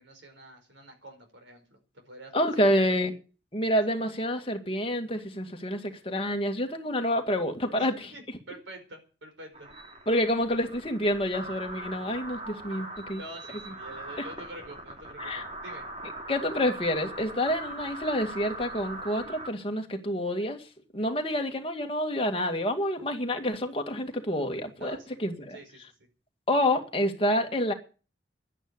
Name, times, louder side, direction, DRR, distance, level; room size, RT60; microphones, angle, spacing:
voice 1, 0.0-1.8 2.0-2.8 7.8-9.7 13.2-15.9 24.8-25.2 25.5-25.8, right 1 dB, 85° right, 5.0 m, -47 dB
voice 2, 2.3-3.1 3.5-7.9 10.1-13.2 15.2-15.4 16.3-20.6 20.9-25.6 26.5-27.7, equal, 30° left, 2.1 m, -28 dB
sound 1, 9.5-19.5, right 2 dB, 35° right, 2.7 m, -41 dB
11.0 x 9.9 x 9.8 m
head